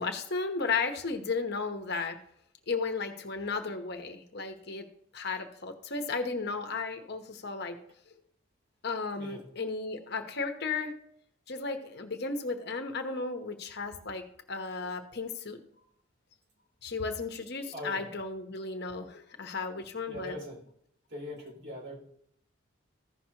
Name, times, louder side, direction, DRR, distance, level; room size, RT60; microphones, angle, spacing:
voice 1, 0.0-2.2 2.7-4.9 5.1-7.8 8.8-11.0 11.5-15.6 16.8-20.3, left 4 dB, 55° left, 6 dB, 1.1 m, -34 dB
voice 2, 17.7-18.1 20.1-20.6 21.1-21.9, left 1 dB, 55° right, -3 dB, 3.8 m, -41 dB
15.5 x 6.0 x 2.9 m, 0.70 s
head